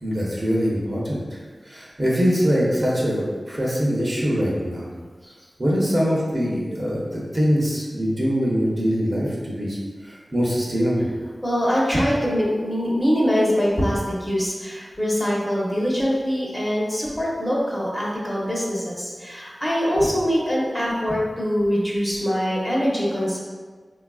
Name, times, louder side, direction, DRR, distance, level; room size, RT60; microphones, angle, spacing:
voice 1, 0.0-4.9 5.6-9.8 10.0-11.1, equal, 35° right, -5 dB, 0.6 m, -23 dB
voice 2, 11.4-23.4, equal, 15° left, -5 dB, 0.6 m, -23 dB
3.3 x 2.3 x 2.3 m, 1.5 s
wide cardioid pair, 90°, 0 cm